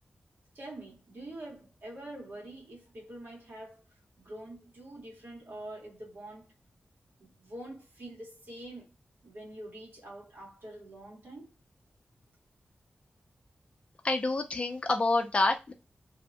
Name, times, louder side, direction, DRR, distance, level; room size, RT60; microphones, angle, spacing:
voice 1, 0.5-3.8 4.2-6.5 7.2-8.9 9.2-11.5, right 1 dB, 65° right, 1.5 m, -45 dB
voice 2, 14.0-15.7, left 2 dB, 35° left, 0.4 m, -27 dB
2.7 x 2.2 x 2.6 m
wide cardioid pair, 120°, 4 cm